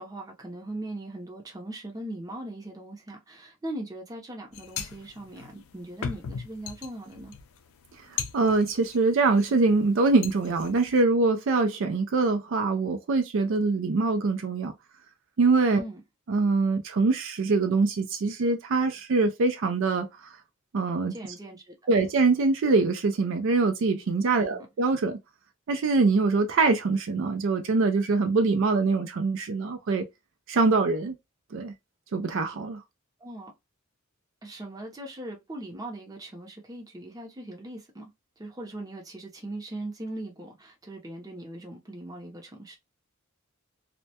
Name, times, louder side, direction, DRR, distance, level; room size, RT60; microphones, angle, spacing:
voice 1, 0.0-7.4 15.7-16.0 21.1-22.0 24.4-24.7 33.2-33.5 34.4-38.1 38.4-42.8, right 1 dB, 20° right, 0.6 m, -40 dB
sound 1, 4.5-9.5 9.9-11.0, left 7 dB, 85° left, 0.4 m, -38 dB
voice 2, 8.3-14.7 15.4-15.8 16.3-20.1 20.7-21.2 21.9-25.2 25.7-30.1 30.5-31.1 31.5-31.7 32.1-32.8, right 3 dB, 65° right, 0.4 m, -24 dB
2.1 x 2.1 x 2.7 m
head